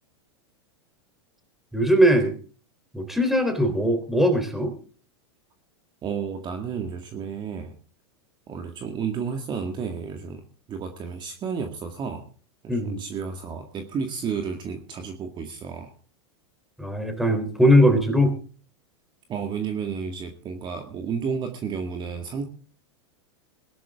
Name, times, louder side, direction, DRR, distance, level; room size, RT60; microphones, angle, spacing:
voice 1, 1.7-2.4 2.9-4.7 12.7-13.0 16.8-18.3, equal, ahead, 6 dB, 3.5 m, -20 dB
voice 2, 6.0-7.7 8.5-10.4 10.7-12.2 12.6-15.9 19.3-22.4, right 6 dB, 30° right, 5 dB, 2.0 m, -31 dB
21.0 x 12.0 x 3.7 m, 0.37 s
hypercardioid pair, 115°, 15 cm